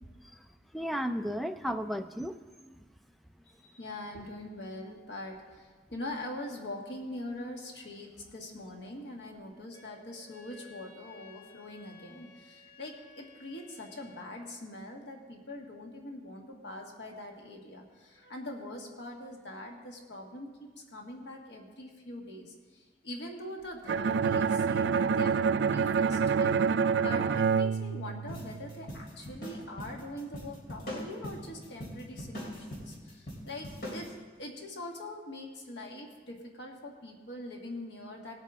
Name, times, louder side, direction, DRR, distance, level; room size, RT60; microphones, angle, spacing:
voice 1, 0.7-2.7, equal, ahead, 8 dB, 0.4 m, -34 dB
voice 2, 3.6-26.5 27.0-34.1 34.4-38.3, left 1 dB, 80° left, 1 dB, 1.7 m, -43 dB
Wind instrument woodwind instrument, 9.7-14.4, left 3 dB, 20° left, 1.7 m, -56 dB
Bowed string instrument, 23.9-28.8, right 6 dB, 80° right, 0.3 m, -27 dB
sound 1, 28.3-34.1, equal, 60° left, 3.4 m, -42 dB
19.5 x 8.4 x 3.6 m, 1.5 s
head